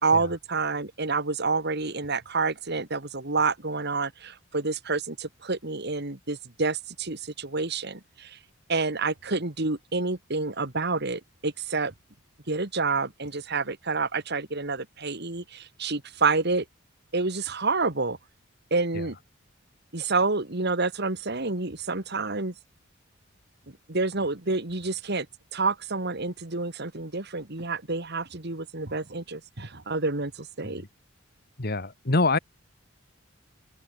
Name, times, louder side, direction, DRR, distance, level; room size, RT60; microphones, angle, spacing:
voice 1, 0.0-8.4 8.7-11.9 12.5-16.6 17.1-18.2 18.7-19.2 19.9-22.5 23.9-25.3 25.5-30.8, right 3 dB, 55° right, 2.3 m, -28 dB
voice 2, 31.6-32.4, left 3 dB, 50° left, 1.9 m, -25 dB
open air
head